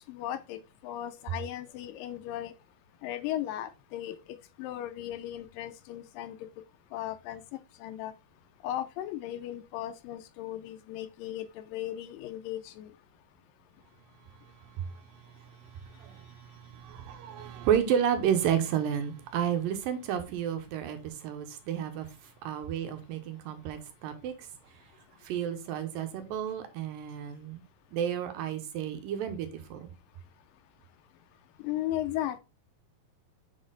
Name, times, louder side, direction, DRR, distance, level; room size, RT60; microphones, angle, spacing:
voice 1, 0.1-0.6 0.8-2.5 3.0-4.2 4.6-6.4 6.9-7.4 7.8-8.1 8.6-12.9 31.6-32.4, left 13 dB, 80° left, 2.1 m, -36 dB
voice 2, 14.8-22.1 22.4-24.5 25.2-27.6 27.9-29.9, right 9 dB, 80° right, 2.6 m, -32 dB
7.0 x 4.3 x 3.8 m
omnidirectional pair, 4.2 m